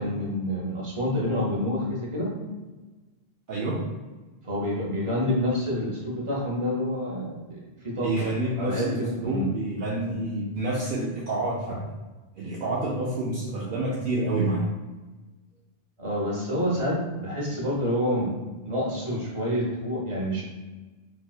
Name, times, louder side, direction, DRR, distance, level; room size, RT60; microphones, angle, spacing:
voice 1, 0.0-2.3 4.4-9.5 16.0-18.3 18.6-20.4, equal, 35° right, -4 dB, 0.9 m, -28 dB
voice 2, 3.5-3.9 8.0-11.8 12.4-14.6, right 2 dB, 65° right, -5 dB, 0.7 m, -28 dB
4.2 x 2.3 x 2.3 m, 1.2 s
omnidirectional pair, 1.0 m